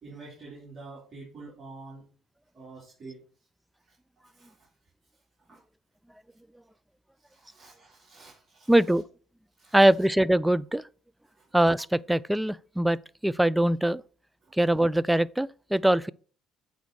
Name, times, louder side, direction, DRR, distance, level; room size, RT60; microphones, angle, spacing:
voice 1, 0.0-2.0 2.5-3.2 4.3-4.5 5.5-5.6 7.2-8.8 9.6-9.8 11.4-11.5, right 3 dB, 45° right, 3.5 m, -47 dB
voice 2, 8.7-9.0 9.7-10.8 11.5-13.0 13.2-14.0 14.6-16.1, right 1 dB, 5° right, 0.4 m, -22 dB
8.2 x 4.0 x 4.7 m
hypercardioid pair, 60°, 0 cm